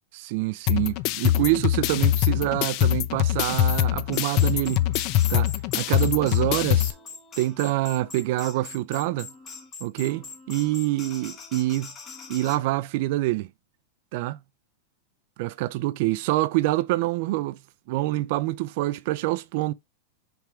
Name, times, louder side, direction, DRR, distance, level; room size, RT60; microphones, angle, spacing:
voice 1, 0.1-4.9 5.3-6.9 7.4-9.3 9.8-11.9 12.3-13.5 14.1-14.4 15.4-17.6 17.9-19.7, right 17 dB, 45° right, 0.5 m, -26 dB
sound 1, 0.7-6.9, left 14 dB, 35° left, 0.4 m, -23 dB
sound 2, 4.1-12.6, left 4 dB, 20° left, 1.1 m, -42 dB
5.8 x 3.6 x 4.9 m
supercardioid pair, 160°, 0 cm